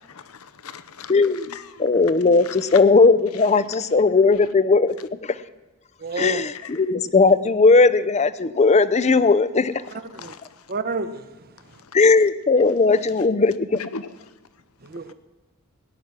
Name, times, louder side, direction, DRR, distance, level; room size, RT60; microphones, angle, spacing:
voice 1, 0.0-1.1 1.5-1.8 6.6-6.7 10.1-10.6 11.8-11.9 13.8-14.1 15.0-15.1, left 5 dB, 80° left, 0.8 m, -39 dB
voice 2, 1.1-5.4 6.2-9.8 11.9-13.8, left 4 dB, 30° left, 0.5 m, -18 dB
voice 3, 6.0-6.4 10.1-10.3 10.7-11.2 14.8-15.1, right 4 dB, 45° right, 0.9 m, -29 dB
17.5 x 6.1 x 9.7 m
head